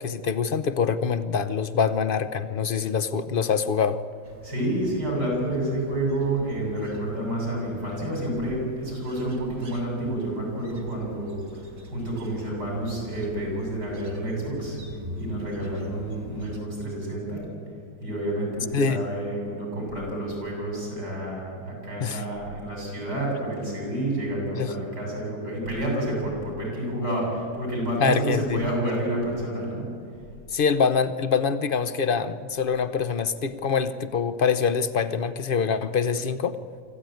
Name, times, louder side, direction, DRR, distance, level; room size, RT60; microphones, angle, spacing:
voice 1, 0.0-4.0 18.7-19.0 22.0-22.2 24.5-24.7 28.0-28.6 30.5-36.6, left 6 dB, 50° left, 12 dB, 0.6 m, -25 dB
sound 1, 4.2-16.6, right 1 dB, 55° right, 2.4 m, -43 dB
voice 2, 4.4-14.8 15.1-17.5 18.0-29.9, right 1 dB, 90° right, -1 dB, 8.3 m, -29 dB
25.0 x 14.5 x 9.1 m, 2.4 s
omnidirectional pair, 1.7 m